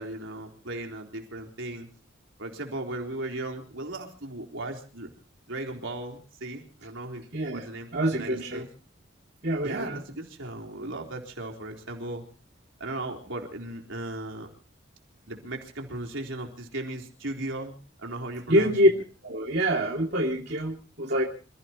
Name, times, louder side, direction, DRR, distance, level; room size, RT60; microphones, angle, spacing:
voice 1, 0.0-1.9 2.4-5.1 5.5-8.7 9.6-12.2 12.8-14.5 15.3-18.7, right 2 dB, 80° right, 1 dB, 3.9 m, -37 dB
voice 2, 7.3-7.7 7.9-8.6 9.4-10.0 18.5-18.9 19.2-21.2, equal, 55° right, -1 dB, 2.5 m, -25 dB
28.0 x 16.0 x 3.0 m, 0.37 s
head